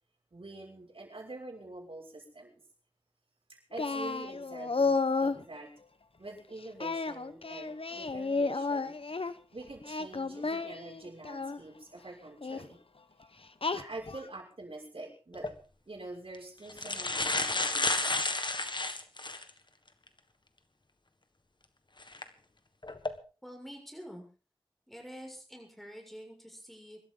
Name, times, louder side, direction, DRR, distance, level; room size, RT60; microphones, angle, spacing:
voice 1, 0.3-2.6 3.7-5.7 6.2-8.9 9.5-12.8 13.7-15.5 15.9-18.0, right 2 dB, 80° right, -1 dB, 6.3 m, -46 dB
Singing, 3.8-5.4 6.8-9.3 9.8-11.6 12.4-12.7 13.6-14.3, left 4 dB, 80° left, 1.0 m, -32 dB
sound 1, 15.3-15.5 16.3-16.4 16.7-19.5 20.1-20.2 22.0-22.2 22.8-23.1, left 2 dB, 55° left, 1.7 m, -31 dB
voice 2, 23.4-24.3 24.9-27.0, equal, ahead, 2 dB, 6.6 m, -47 dB
24.5 x 13.0 x 4.0 m, 0.37 s
wide cardioid pair, 55°, 9 cm